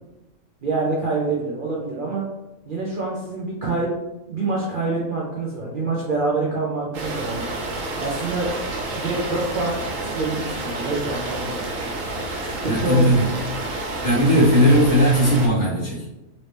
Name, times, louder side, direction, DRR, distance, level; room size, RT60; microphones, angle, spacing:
voice 1, 0.6-2.2 2.7-3.9 4.3-7.5 8.0-8.5 8.9-11.5 12.3-13.3, right 3 dB, 55° right, -4 dB, 0.6 m, -26 dB
sound 1, 6.9-15.5, right 2 dB, 80° right, 1.1 m, -29 dB
voice 2, 12.7-13.3 14.0-16.0, equal, 40° left, -5 dB, 0.9 m, -17 dB
3.1 x 2.6 x 3.2 m, 0.98 s
omnidirectional pair, 1.4 m